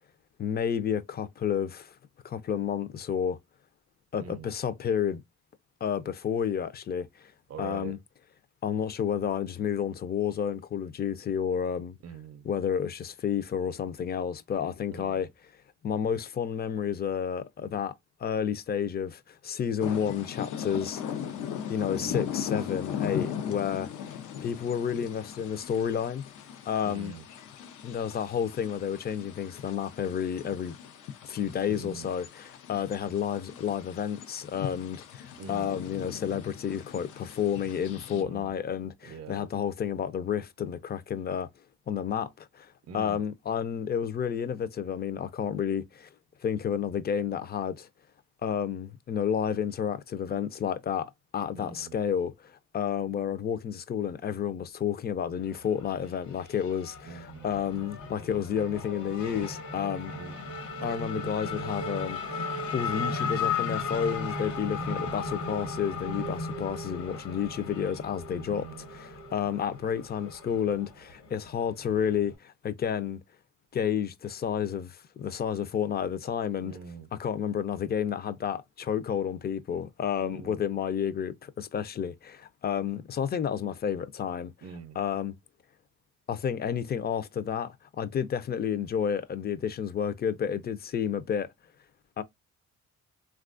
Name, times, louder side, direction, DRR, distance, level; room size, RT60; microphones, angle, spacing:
voice 1, 0.4-1.9 2.2-3.4 4.1-5.2 5.8-7.3 7.6-8.0 8.6-12.0 12.4-15.3 15.8-17.9 18.2-21.0 21.7-24.1 24.4-26.3 26.7-27.1 27.8-30.8 31.2-41.5 41.9-42.7 42.9-46.1 46.4-47.9 48.4-60.1 60.8-73.2 73.7-76.8 77.2-84.5 85.0-85.4 86.3-91.5 92.2-92.3, left 8 dB, 35° left, 0.4 m, -31 dB
voice 2, 4.2-4.5 7.5-7.9 12.0-12.5 14.9-15.2 22.0-22.3 26.8-27.2 31.7-32.1 35.4-35.8 38.1-38.5 39.0-39.5 42.9-43.2 51.6-52.0 57.0-57.5 60.1-60.6 64.8-65.2 68.4-68.9 76.6-77.1 80.2-80.6 84.6-85.0, right 6 dB, 55° right, 0.5 m, -43 dB
sound 1, 19.8-38.2, left 9 dB, 90° left, 0.6 m, -39 dB
Race car auto racing / Accelerating revving vroom, 55.4-72.4, left 3 dB, 70° left, 1.1 m, -36 dB
3.2 x 2.3 x 2.4 m
cardioid pair, 90°, 30 cm